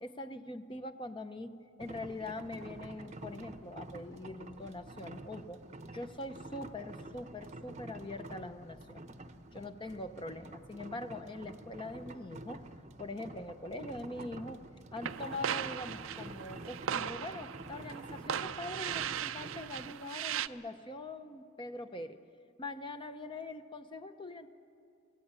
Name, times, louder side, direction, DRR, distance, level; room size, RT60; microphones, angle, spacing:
voice 1, 0.0-5.6 5.9-9.0 9.5-12.6 13.0-14.6 14.9-22.2 22.6-24.5, left 2 dB, 25° left, 9 dB, 0.7 m, -43 dB
sound 1, 1.8-19.9, right 2 dB, 35° right, 0.8 m, -48 dB
sound 2, 15.0-20.5, right 9 dB, 70° right, 0.5 m, -38 dB
23.5 x 16.5 x 8.9 m, 2.4 s
head